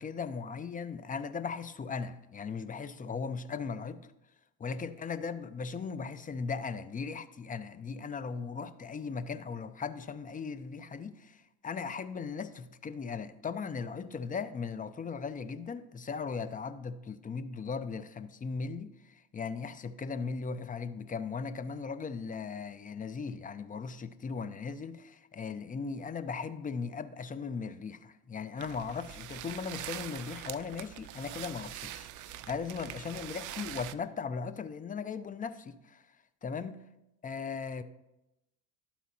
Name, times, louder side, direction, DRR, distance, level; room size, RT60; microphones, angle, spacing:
voice 1, 0.0-4.0 4.6-36.0 36.4-36.8 37.2-37.8, left 5 dB, 20° left, 0.5 m, -38 dB
sound 1, 28.6-33.9, right 12 dB, 45° right, 0.4 m, -43 dB
12.0 x 4.2 x 2.8 m
hypercardioid pair, 70°, 43 cm